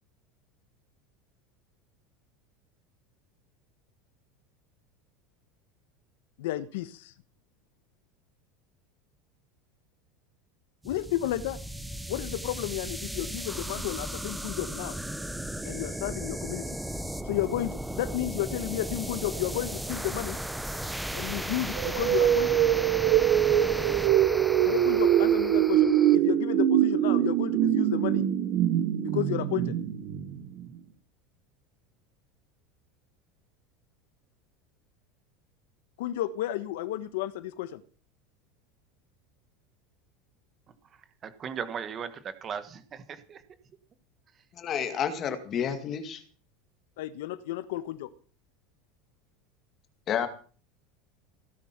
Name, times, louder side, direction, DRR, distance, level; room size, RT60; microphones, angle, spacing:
voice 1, 6.4-7.1 10.8-11.6 12.1-15.0 15.6-16.8 17.2-20.4 21.1-22.6 24.7-28.2 29.0-29.7 36.0-37.8 47.0-48.1, left 13 dB, 75° left, 1.2 m, -32 dB
sound 1, 10.8-26.2, right 1 dB, ahead, 0.7 m, -36 dB
sound 2, 21.7-30.7, right 11 dB, 40° right, 1.2 m, -24 dB
voice 2, 41.2-43.4, right 7 dB, 20° right, 1.4 m, -37 dB
voice 3, 44.5-46.2 50.1-50.3, left 8 dB, 25° left, 2.0 m, -30 dB
17.0 x 10.5 x 6.0 m
supercardioid pair, 180°, 0 cm